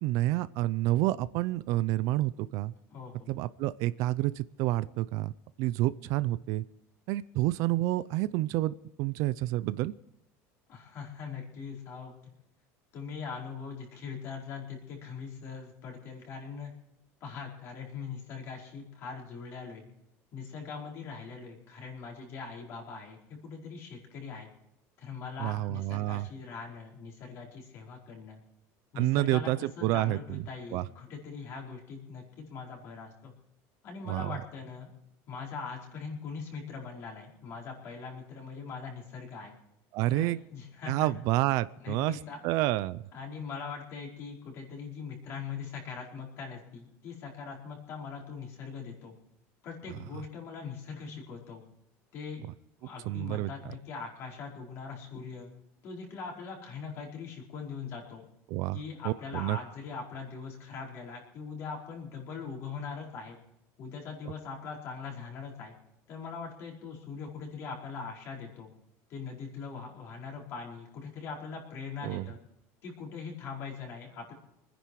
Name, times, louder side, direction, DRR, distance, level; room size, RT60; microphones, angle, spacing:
voice 1, 0.0-2.7 3.3-5.3 5.6-6.6 7.1-9.9 25.4-26.3 29.0-30.4 30.7-30.8 34.1-34.3 39.9-40.4 40.9-43.0 53.1-53.5 58.5-58.8 59.0-59.6 72.0-72.3, right 17 dB, 50° right, 16 dB, 0.5 m, -29 dB
voice 2, 2.9-3.3 10.7-12.1 12.9-16.7 17.2-19.8 20.3-24.5 25.0-28.4 28.9-33.3 33.8-34.9 35.3-39.5 40.1-41.1 41.8-42.4 43.1-49.1 49.6-51.6 52.1-52.4 52.8-55.5 55.8-58.2 58.7-63.4 63.8-65.8 66.1-68.7 69.1-72.4 72.8-74.3, left 5 dB, 40° left, -1 dB, 4.8 m, -41 dB
25.5 x 10.0 x 4.8 m, 0.81 s
cardioid pair, 175°, 7 cm